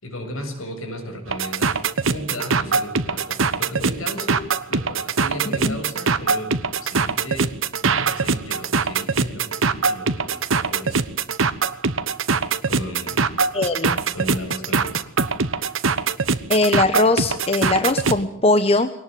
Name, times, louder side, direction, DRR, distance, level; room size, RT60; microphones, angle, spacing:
voice 1, 0.0-1.8 2.1-7.6 7.8-11.2 12.6-13.4 14.1-15.0 15.5-15.8, left 1 dB, 85° left, 5 dB, 7.2 m, -35 dB
sound 1, 1.3-18.2, right 4 dB, 70° right, 1.3 m, -22 dB
voice 2, 13.5-14.0 16.5-18.9, left 2 dB, 30° left, 9 dB, 1.1 m, -20 dB
22.5 x 19.0 x 9.3 m, 0.69 s
head